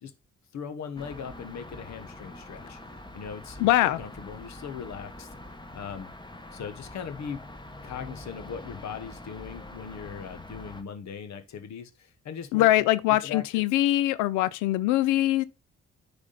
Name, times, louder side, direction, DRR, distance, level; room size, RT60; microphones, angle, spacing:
voice 1, 0.5-2.8 3.1-5.3 5.7-6.1 6.5-7.4 7.8-12.7 13.1-13.6, left 7 dB, 60° left, 1.1 m, -39 dB
sound 1, 1.0-10.8, left 1 dB, 15° left, 1.2 m, -44 dB
voice 2, 3.6-4.0 12.5-15.4, left 15 dB, 80° left, 0.5 m, -22 dB
9.8 x 3.6 x 4.0 m
hypercardioid pair, 50°, 31 cm